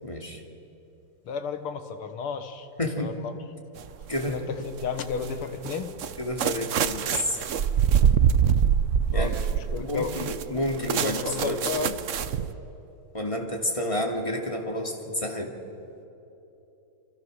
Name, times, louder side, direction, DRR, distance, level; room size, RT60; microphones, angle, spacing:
voice 1, 0.0-0.4 2.8-3.1 4.1-4.5 6.2-7.4 9.1-9.3 9.8-12.0 13.1-15.5, left 1 dB, 15° left, 1 dB, 2.4 m, -30 dB
voice 2, 1.3-2.7 3.0-3.3 4.3-6.0 9.1-10.1 11.0-11.9, left 6 dB, 85° left, 8 dB, 2.3 m, -33 dB
sound 1, 3.8-4.3 4.8-12.5, right 8 dB, 85° right, 0.6 m, -25 dB
29.0 x 25.5 x 6.4 m, 3.0 s
omnidirectional pair, 2.3 m